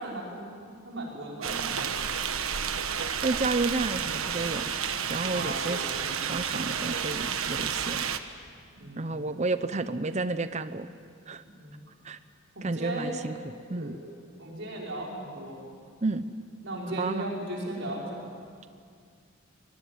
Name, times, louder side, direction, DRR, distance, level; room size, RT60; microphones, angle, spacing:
voice 1, 0.0-1.8 5.3-6.0 8.7-9.2 11.4-11.8 12.5-13.2 13.7-14.1 14.4-15.6 16.6-18.2, right 1 dB, 60° right, -3 dB, 5.8 m, -37 dB
sound 1, 1.4-8.2, right 7 dB, 85° right, 1.3 m, -31 dB
voice 2, 3.2-4.7 5.1-5.9 6.2-8.1 9.0-10.9 11.3-11.4 12.0-12.2 12.6-14.0 16.0-16.3 17.0-17.2, right 3 dB, 35° right, 12 dB, 0.7 m, -31 dB
25.0 x 21.0 x 9.8 m, 2.2 s
head